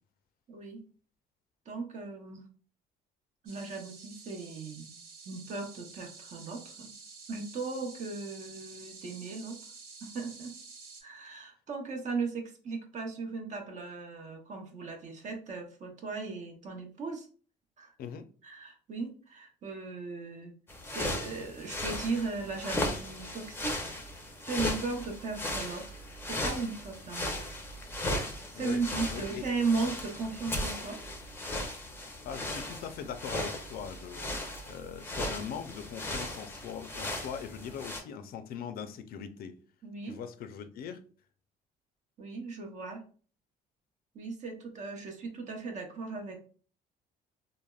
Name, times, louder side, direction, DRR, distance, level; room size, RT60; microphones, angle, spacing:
voice 1, 0.5-0.8 1.7-2.4 3.4-4.9 5.3-6.9 7.3-9.6 10.0-10.5 11.0-17.3 17.8-17.9 18.4-20.5 20.8-23.9 24.4-27.4 28.5-31.0 34.3-34.4 39.8-40.2 42.2-43.0 44.1-46.4, right 4 dB, 45° right, 0.7 m, -37 dB
sound 1, 3.5-11.0, right 4 dB, 90° right, 0.9 m, -50 dB
sound 2, 20.7-38.0, left 1 dB, 15° left, 0.5 m, -37 dB
voice 2, 29.1-29.5 32.3-39.6 40.1-41.0, left 7 dB, 60° left, 0.4 m, -41 dB
3.3 x 2.0 x 2.3 m
cardioid pair, 110°, 17 cm